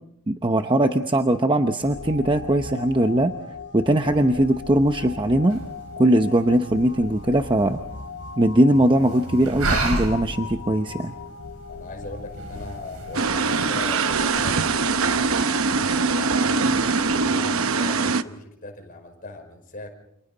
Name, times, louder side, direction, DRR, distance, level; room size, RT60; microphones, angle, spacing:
voice 1, 0.3-3.3 3.7-5.6 6.0-7.8 8.4-11.1, right 1 dB, 20° right, 6 dB, 0.9 m, -20 dB
sound 1, 1.8-17.4, left 4 dB, 55° left, 1.3 m, -39 dB
sound 2, 5.5-14.5, right 2 dB, 90° right, 5.7 m, -33 dB
voice 2, 11.7-15.9 16.1-19.9, left 2 dB, 40° left, 4 dB, 5.3 m, -40 dB
sound 3, 13.1-18.2, right 4 dB, 65° right, 0.9 m, -22 dB
29.5 x 28.5 x 4.0 m, 0.72 s
head